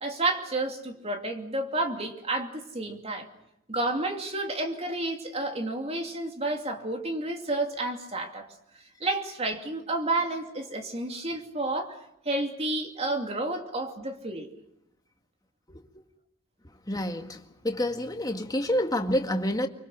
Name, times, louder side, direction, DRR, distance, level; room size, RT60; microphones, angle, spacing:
voice 1, 0.0-3.3 3.7-8.5 9.0-12.0 12.2-14.5, right 2 dB, 35° right, 2.8 m, -30 dB
voice 2, 16.9-19.7, left 1 dB, 20° left, 1.9 m, -28 dB
25.0 x 24.5 x 6.3 m
head